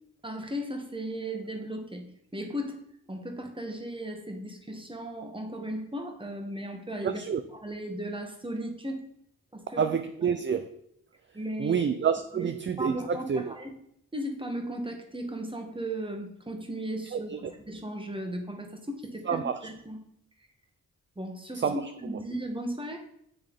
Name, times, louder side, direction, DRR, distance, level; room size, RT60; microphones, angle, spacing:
voice 1, 0.2-2.8 3.1-7.2 7.5-9.0 9.5-9.8 10.2-10.3 11.3-11.8 12.3-12.5 12.8-13.8 14.1-20.0 21.2-23.0, right 1 dB, 15° right, 3 dB, 1.3 m, -36 dB
voice 2, 7.0-7.4 9.8-10.7 11.6-13.5 17.1-17.2 19.3-19.6 21.6-21.8, right 7 dB, 35° right, 9 dB, 0.4 m, -28 dB
9.3 x 3.2 x 3.6 m, 0.72 s
cardioid pair, 45°, 35 cm